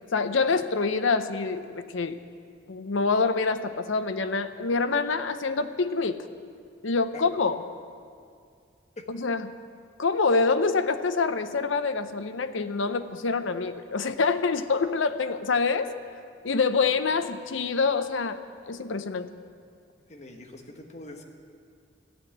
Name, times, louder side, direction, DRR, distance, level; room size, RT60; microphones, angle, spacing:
voice 1, 0.1-2.2 2.7-6.3 6.8-7.6 9.1-9.5 10.0-15.9 16.4-18.4 18.7-19.3, left 4 dB, 75° left, 10 dB, 0.7 m, -26 dB
voice 2, 20.1-21.2, left 2 dB, 35° left, 2 dB, 1.3 m, -44 dB
13.5 x 8.0 x 9.8 m, 2.3 s
head